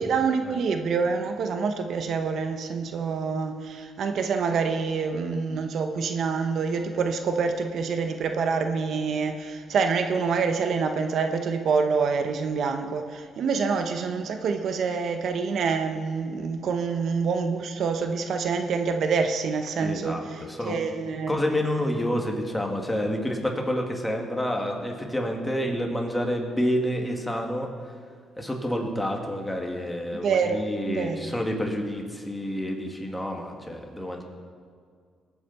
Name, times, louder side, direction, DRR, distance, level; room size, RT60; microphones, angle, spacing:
voice 1, 0.0-21.4 30.2-31.3, right 5 dB, 65° right, 6 dB, 0.9 m, -26 dB
voice 2, 19.8-20.2 20.5-20.8 21.3-27.9 28.4-34.2, equal, 10° left, 1 dB, 2.2 m, -28 dB
20.0 x 9.1 x 4.2 m, 2.1 s
cardioid pair, 90°, 0 cm